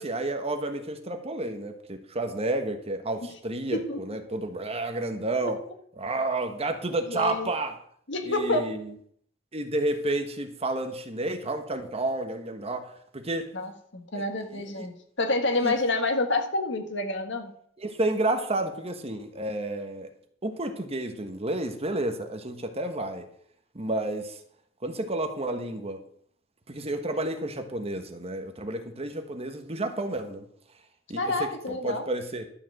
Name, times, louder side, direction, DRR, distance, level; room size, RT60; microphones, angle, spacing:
voice 1, 0.0-5.6 6.0-7.8 8.2-8.9 9.5-13.5 14.1-14.2 14.5-14.9 15.6-15.7 17.8-20.1 20.4-23.3 23.7-24.4 24.8-26.0 26.7-30.4 31.1-32.5, right 2 dB, 30° right, 7 dB, 1.3 m, -31 dB
voice 2, 7.1-7.5 8.1-8.6 13.5-14.9 15.2-17.5 31.2-32.0, left 2 dB, 70° left, 6 dB, 1.7 m, -28 dB
12.0 x 5.0 x 7.6 m, 0.63 s
head